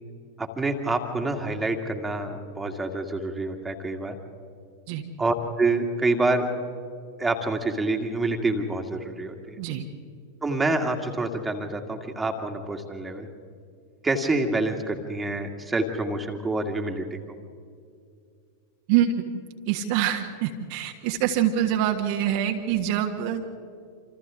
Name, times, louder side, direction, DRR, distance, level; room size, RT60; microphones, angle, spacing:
voice 1, 0.4-4.2 5.2-6.5 7.2-9.6 10.4-13.3 14.0-17.3, right 2 dB, 10° right, 3 dB, 2.2 m, -27 dB
voice 2, 18.9-19.2 19.7-23.6, right 10 dB, 45° right, 3 dB, 1.5 m, -25 dB
27.5 x 27.0 x 3.8 m, 2.3 s
figure-of-eight pair, 90°, 0 cm